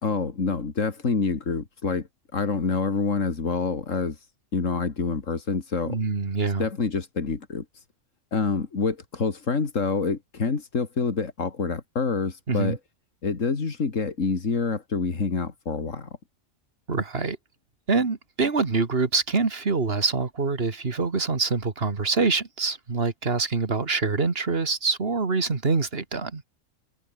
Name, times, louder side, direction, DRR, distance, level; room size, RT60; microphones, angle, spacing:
voice 1, 0.0-2.1 2.3-6.0 6.6-7.8 8.3-12.8 13.2-16.1, left 4 dB, 75° left, 2.7 m, -27 dB
voice 2, 5.9-6.6 12.5-12.8 16.9-17.4 17.9-26.4, right 4 dB, 50° right, 2.3 m, -25 dB
omnidirectional pair, 1.3 m